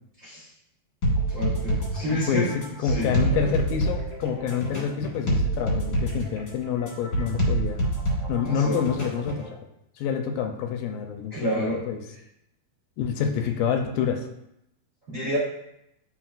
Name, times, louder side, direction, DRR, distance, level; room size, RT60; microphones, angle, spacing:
sound 1, 1.0-9.5, right 1 dB, 40° left, 1.5 m, -27 dB
voice 1, 1.3-2.5 2.8-3.5 8.4-8.8 11.3-11.8 15.1-15.4, right 1 dB, 80° right, -8 dB, 0.7 m, -29 dB
voice 2, 2.1-7.9 8.3-9.5 10.0-12.0 13.0-14.3, left 7 dB, 80° left, 4 dB, 2.2 m, -27 dB
10.5 x 3.9 x 2.5 m, 0.82 s
omnidirectional pair, 4.2 m